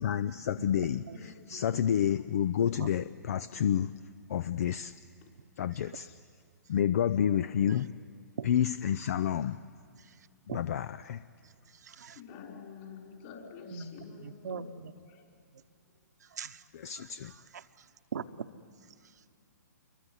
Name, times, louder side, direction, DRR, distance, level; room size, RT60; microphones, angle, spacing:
voice 1, 0.0-1.0 1.5-4.0 4.3-5.0 5.6-6.1 6.7-7.9 8.4-9.6 10.5-11.2 16.7-17.3, left 9 dB, 55° left, 15 dB, 0.5 m, -29 dB
voice 2, 0.6-1.2 1.6-1.8 2.8-2.9 7.3-7.4 8.4-8.5 10.1-10.2 10.5-10.6 11.8-12.2 13.7-13.9 14.2-14.7 16.3-16.6 17.0-17.6 18.1-18.5, right 6 dB, 70° right, 8 dB, 1.0 m, -41 dB
voice 3, 1.1-1.6 5.2-5.3 6.1-6.2 8.0-8.1 12.1-15.3 15.9-16.0, left 6 dB, 40° left, 1 dB, 5.4 m, -49 dB
28.5 x 23.5 x 8.1 m, 2.4 s
hypercardioid pair, 130°, 10 cm